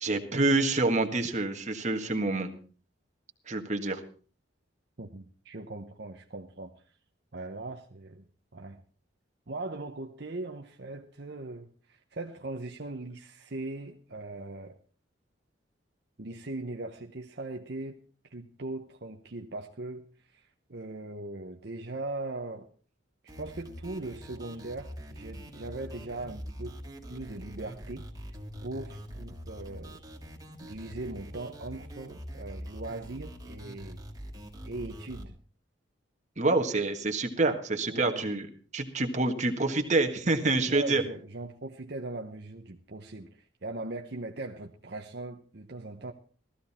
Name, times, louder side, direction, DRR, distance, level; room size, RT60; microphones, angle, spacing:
voice 1, 0.0-2.5 3.5-4.0 36.4-38.5 38.7-41.0, right 2 dB, 35° right, 4 dB, 1.6 m, -27 dB
voice 2, 5.0-6.7 7.3-8.2 8.5-8.8 9.5-14.8 16.2-18.0 18.3-22.7 23.4-26.8 27.1-28.4 28.6-30.0 30.6-34.0 34.6-35.3 37.9-38.3 40.6-46.1, right 2 dB, 55° right, 3 dB, 0.9 m, -40 dB
sound 1, 23.3-35.3, equal, 20° right, 2.1 m, -44 dB
15.5 x 14.0 x 4.3 m, 0.40 s
head